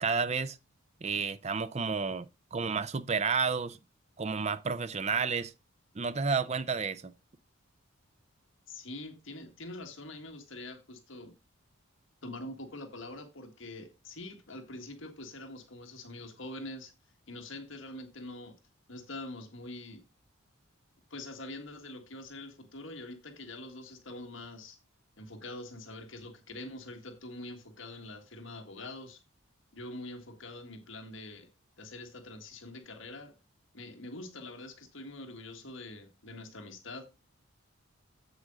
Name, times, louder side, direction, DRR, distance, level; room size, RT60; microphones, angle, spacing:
voice 1, 0.0-0.6 1.0-3.8 4.2-5.5 6.0-7.1, right 5 dB, 30° right, 0.5 m, -31 dB
voice 2, 8.7-11.3 12.2-16.9 17.3-18.6 18.9-20.0 21.1-24.8 25.2-29.2 29.7-31.5 31.8-33.3 33.7-37.1, left 2 dB, 65° left, 1.7 m, -44 dB
8.0 x 7.9 x 3.7 m
head